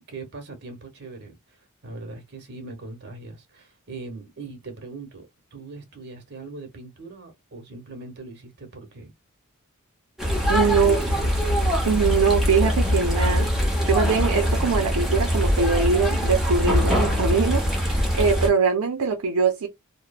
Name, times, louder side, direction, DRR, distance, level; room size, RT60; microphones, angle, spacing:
voice 1, 0.1-9.1 10.3-11.5, right 3 dB, 50° right, 1.1 m, -40 dB
sound 1, 10.2-18.5, equal, ahead, 0.8 m, -22 dB
voice 2, 10.5-11.0 11.8-19.7, right 5 dB, 75° right, 0.5 m, -22 dB
3.0 x 2.0 x 2.3 m
head